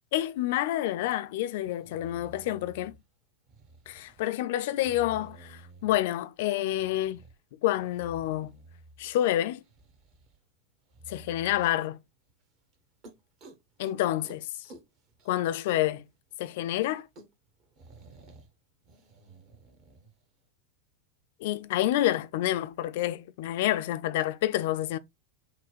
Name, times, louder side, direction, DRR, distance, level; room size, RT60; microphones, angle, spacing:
voice 1, 0.1-2.9 3.9-7.2 7.6-8.5 9.0-9.6 11.1-12.0 13.8-14.7 15.3-16.1 16.4-17.1 21.4-25.0, left 13 dB, 50° left, 0.5 m, -28 dB
sound 1, 1.0-1.1 1.6-3.0 3.5-4.2 4.7-6.1 6.7-7.4 7.8-9.2 9.5-10.4 10.9-11.7 12.3-12.4 12.7-12.8 13.0-14.0 14.2-14.4 14.6-16.0 16.3-16.4 16.7-16.8 16.9-18.5 18.8-20.1, right 3 dB, 35° right, 1.2 m, -52 dB
5.8 x 2.2 x 4.2 m
figure-of-eight pair, 90°, 0 cm